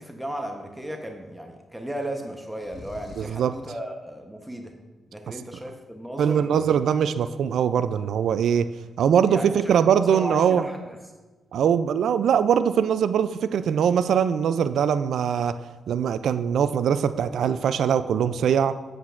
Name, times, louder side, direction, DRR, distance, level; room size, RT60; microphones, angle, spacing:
voice 1, 0.0-4.7 5.1-6.7 9.3-11.0, right 1 dB, 10° right, 3 dB, 0.9 m, -35 dB
sound 1, 2.6-3.5, left 3 dB, 50° left, 1.4 m, -43 dB
voice 2, 3.2-3.5 6.2-8.7 9.0-10.6 11.5-15.6 15.9-18.8, right 8 dB, 75° right, 13 dB, 0.3 m, -22 dB
7.9 x 7.5 x 2.5 m, 1.3 s
supercardioid pair, 55°, 0 cm